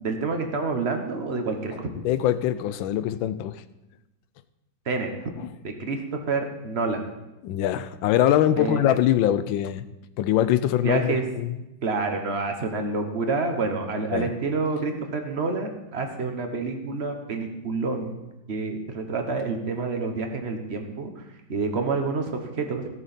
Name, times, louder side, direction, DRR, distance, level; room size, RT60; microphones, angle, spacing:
voice 1, 0.0-1.9 4.8-5.3 5.6-7.1 8.6-9.0 10.8-11.2 11.8-18.2 18.5-21.2 21.5-22.9, right 4 dB, 40° right, 5 dB, 1.3 m, -28 dB
voice 2, 1.9-3.6 7.4-9.8 10.2-11.5 14.1-14.3, left 11 dB, 85° left, 14 dB, 1.4 m, -23 dB
17.0 x 7.0 x 4.3 m, 0.97 s
omnidirectional pair, 2.1 m